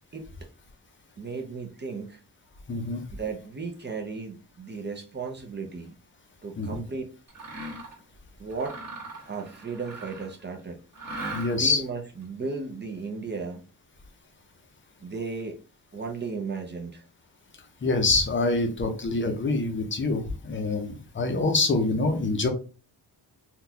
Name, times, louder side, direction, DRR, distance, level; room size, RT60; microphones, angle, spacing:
voice 1, 1.2-2.2 3.1-6.0 6.4-7.1 8.4-8.8 9.3-10.8 11.5-13.6 15.0-15.6 15.9-17.0, right 4 dB, 25° right, 2 dB, 0.5 m, -35 dB
voice 2, 2.7-3.0 6.6-6.8 11.3-11.8 17.8-22.5, left 3 dB, 30° left, 5 dB, 0.6 m, -25 dB
Mechanisms, 7.3-8.0 8.5-10.4 10.9-11.8, right 2 dB, 45° right, 1.4 m, -39 dB
3.8 x 2.3 x 2.7 m, 0.35 s
wide cardioid pair, 175°, 40 cm